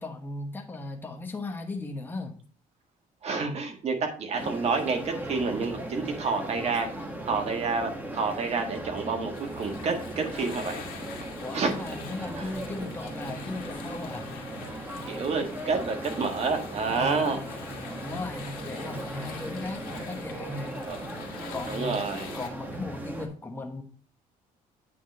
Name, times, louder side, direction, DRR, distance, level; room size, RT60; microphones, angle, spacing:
voice 1, 0.0-2.4 11.4-14.3 16.9-20.9 21.5-22.0 22.3-23.8, left 2 dB, 15° left, 3 dB, 1.1 m, -37 dB
voice 2, 3.2-6.9 7.2-10.9 11.5-11.8 12.2-12.5 15.1-17.4 20.8-21.0 21.7-22.4, right 4 dB, 45° right, 4 dB, 1.6 m, -29 dB
sound 1, 4.3-23.3, right 1 dB, 10° right, 1.6 m, -38 dB
sound 2, 9.3-22.5, left 7 dB, 80° left, 1.8 m, -45 dB
8.6 x 3.8 x 5.2 m, 0.43 s
cardioid pair, 110°, 15 cm